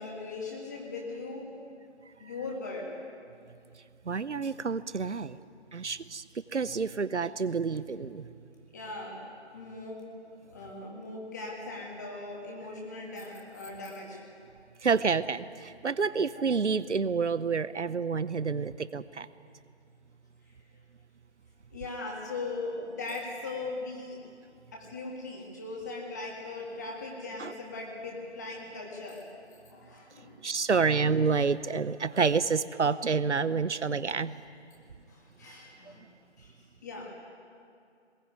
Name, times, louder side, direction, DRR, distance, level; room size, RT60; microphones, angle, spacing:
voice 1, 0.0-1.5 2.2-3.0 8.7-9.2 9.5-10.1 10.5-14.2 21.7-24.2 24.7-29.2 29.7-30.7 35.1-36.1 36.4-37.1, left 3 dB, 15° left, -1 dB, 2.0 m, -39 dB
voice 2, 4.1-5.4 5.7-6.2 6.5-8.3 14.8-19.3 27.4-27.5 30.4-34.4, right 5 dB, 80° right, 16 dB, 0.8 m, -28 dB
20.5 x 16.5 x 9.4 m, 2.4 s
figure-of-eight pair, 165°, 34 cm